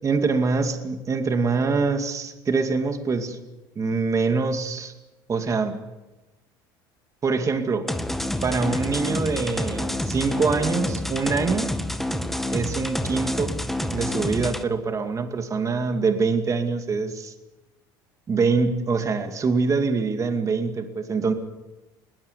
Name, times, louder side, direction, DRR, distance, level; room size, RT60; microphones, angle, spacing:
voice 1, 0.0-3.4 3.8-4.9 5.3-5.7 7.2-8.0 8.4-11.7 12.5-13.6 13.9-17.3 18.3-21.3, right 4 dB, 30° right, 6 dB, 2.4 m, -24 dB
sound 1, 7.9-14.6, left 1 dB, ahead, 1.7 m, -28 dB
21.0 x 20.0 x 8.3 m, 1.1 s
supercardioid pair, 95°, 11 cm